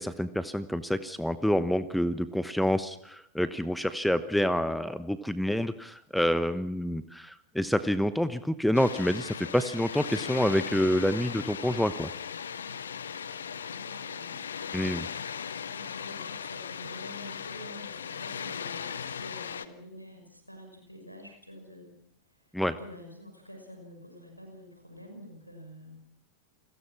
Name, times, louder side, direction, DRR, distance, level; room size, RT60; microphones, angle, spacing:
voice 1, 0.0-12.1 14.7-15.1 22.5-22.8, equal, ahead, 14 dB, 1.1 m, -28 dB
Water, 8.7-19.7, left 7 dB, 70° left, 1.3 m, -38 dB
voice 2, 12.3-14.7 15.7-21.9 22.3-26.0, equal, 90° left, 4 dB, 5.9 m, -48 dB
29.5 x 21.5 x 6.0 m, 0.71 s
figure-of-eight pair, 90°, 0 cm